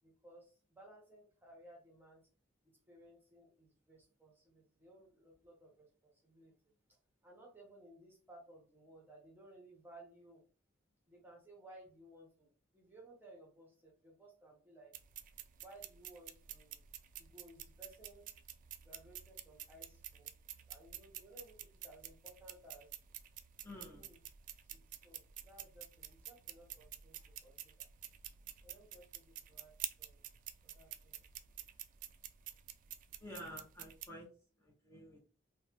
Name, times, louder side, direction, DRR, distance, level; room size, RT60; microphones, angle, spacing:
voice 1, 0.0-2.3 2.6-6.6 6.9-10.4 11.1-14.9 15.6-16.8 17.2-18.3 18.8-20.3 20.6-22.9 23.8-24.2 24.7-27.9 28.6-29.7 30.0-30.2 30.6-31.2, right 1 dB, 10° right, -1 dB, 0.8 m, -59 dB
sound 1, 14.9-34.1, right 11 dB, 45° right, 0.3 m, -50 dB
voice 2, 23.6-24.1 33.2-34.3 34.6-35.2, left 1 dB, 15° left, -4 dB, 0.6 m, -50 dB
3.0 x 2.2 x 2.8 m, 0.38 s
head